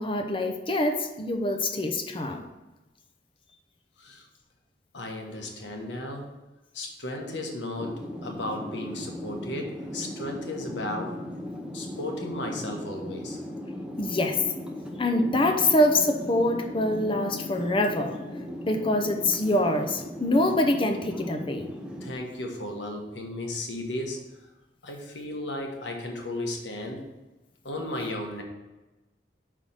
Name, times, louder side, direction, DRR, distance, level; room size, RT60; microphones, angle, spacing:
voice 1, 0.0-2.4 14.0-14.4 15.0-18.2 18.6-21.7, left 1 dB, 30° left, 4 dB, 0.7 m, -25 dB
voice 2, 4.9-6.3 6.7-11.2 11.7-13.4 22.0-24.2 24.8-27.1 27.6-28.4, left 1 dB, 80° left, 2 dB, 1.3 m, -35 dB
sound 1, 7.8-22.1, left 1 dB, 5° right, 0.7 m, -38 dB
5.6 x 4.9 x 5.7 m, 1.1 s
head